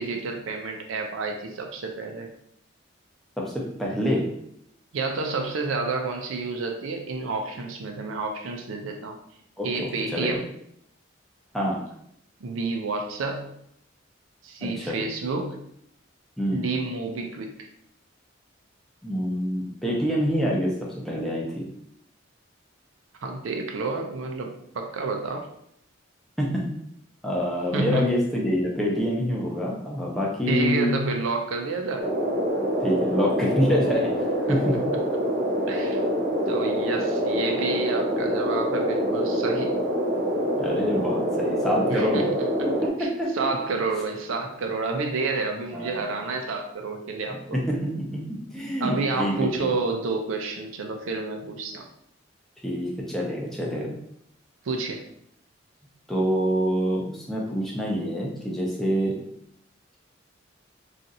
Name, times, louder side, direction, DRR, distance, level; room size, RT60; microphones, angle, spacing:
voice 1, 0.0-2.3 4.9-9.2 9.6-10.4 12.4-13.6 14.4-15.7 16.5-17.5 23.2-25.5 27.7-28.1 30.5-32.1 34.5-34.8 35.7-36.0 36.5-39.7 41.9-42.2 43.0-43.1 43.3-47.6 48.8-51.8 54.6-55.0, right 3 dB, 85° right, 2 dB, 0.5 m, -29 dB
voice 2, 3.4-4.3 9.6-10.4 11.5-11.8 14.6-15.0 16.4-16.7 19.0-21.6 26.4-26.6 27.2-30.9 32.8-34.1 34.5-34.7 40.6-42.2 42.6-43.3 45.7-46.1 47.3-49.7 52.6-53.9 56.1-59.2, equal, ahead, -3 dB, 0.6 m, -26 dB
sound 1, 32.0-42.9, equal, 50° right, 0.9 m, -25 dB
2.6 x 2.4 x 4.0 m, 0.72 s
head